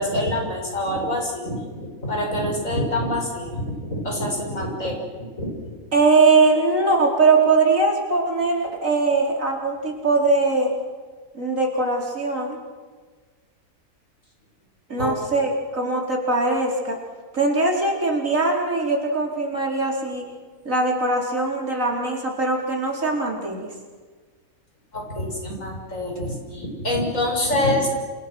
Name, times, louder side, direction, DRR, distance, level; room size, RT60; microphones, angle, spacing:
voice 1, 0.0-5.0 5.4-5.8 15.0-15.1 24.9-27.9, left 1 dB, 60° left, 1 dB, 7.1 m, -26 dB
voice 2, 5.9-10.7 11.3-12.6 14.9-17.0 17.3-20.3 20.6-23.7, right 3 dB, 60° right, 0 dB, 5.0 m, -21 dB
29.0 x 28.0 x 6.4 m, 1.5 s
omnidirectional pair, 1.6 m